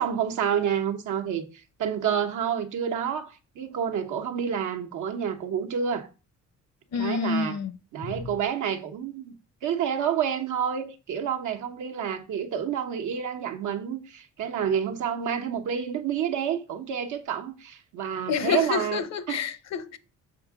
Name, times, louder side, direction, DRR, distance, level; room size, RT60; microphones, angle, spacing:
voice 1, 0.0-1.4 1.8-6.1 6.9-7.6 7.9-9.3 9.6-19.0 19.3-19.4, right 8 dB, 80° right, 1.1 m, -29 dB
voice 2, 6.9-7.7 8.0-8.2 18.3-20.0, left 6 dB, 60° left, 0.9 m, -28 dB
7.1 x 3.6 x 6.1 m
cardioid pair, 90°, 30 cm